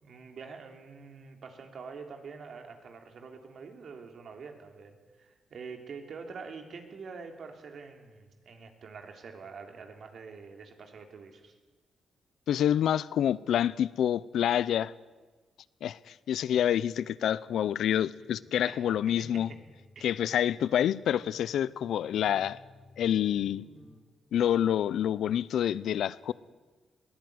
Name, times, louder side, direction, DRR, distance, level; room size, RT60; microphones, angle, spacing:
voice 1, 0.0-11.5 18.6-19.3 19.9-20.0, right 5 dB, 60° right, 4 dB, 3.4 m, -46 dB
voice 2, 12.5-14.9 15.8-19.5 20.0-22.6 23.0-23.6 24.3-26.3, left 10 dB, 80° left, 19 dB, 0.6 m, -27 dB
sound 1, 18.1-24.0, left 2 dB, 40° left, 4.9 m, -56 dB
21.5 x 16.5 x 9.6 m, 1.3 s
cardioid pair, 85°, 0 cm